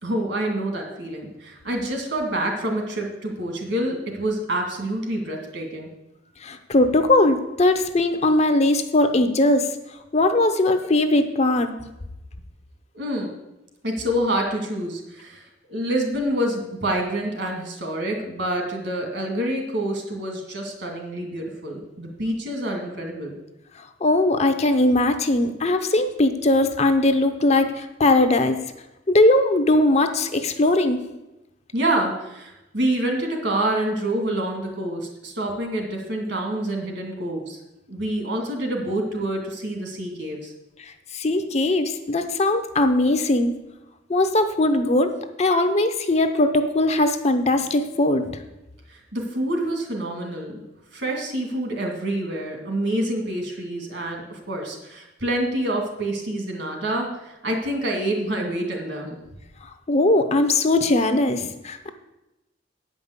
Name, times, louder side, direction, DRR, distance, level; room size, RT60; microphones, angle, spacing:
voice 1, 0.0-5.9 12.9-13.3 13.8-23.4 31.7-37.6 37.9-40.5 48.9-50.6 50.9-59.2, right 1 dB, 60° right, 3 dB, 2.3 m, -27 dB
voice 2, 6.4-9.7 10.1-11.7 24.0-28.6 29.1-31.1 40.8-43.5 44.1-45.1 45.4-48.4 59.9-61.9, left 2 dB, 35° left, 8 dB, 0.7 m, -20 dB
9.0 x 5.3 x 8.0 m, 0.94 s
head